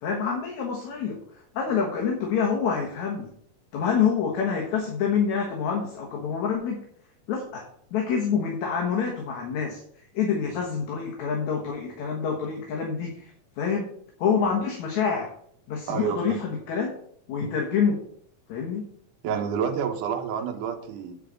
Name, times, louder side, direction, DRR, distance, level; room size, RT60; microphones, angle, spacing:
voice 1, 0.0-1.2 1.5-3.3 3.7-6.8 7.3-7.6 7.9-9.8 10.1-13.3 13.6-13.9 14.2-15.3 15.7-16.9 17.3-18.0 18.5-18.8, left 6 dB, 70° left, 0 dB, 2.6 m, -26 dB
voice 2, 15.9-16.4 19.2-21.1, right 7 dB, 80° right, 4 dB, 2.5 m, -28 dB
10.0 x 4.1 x 6.4 m, 0.64 s
omnidirectional pair, 3.6 m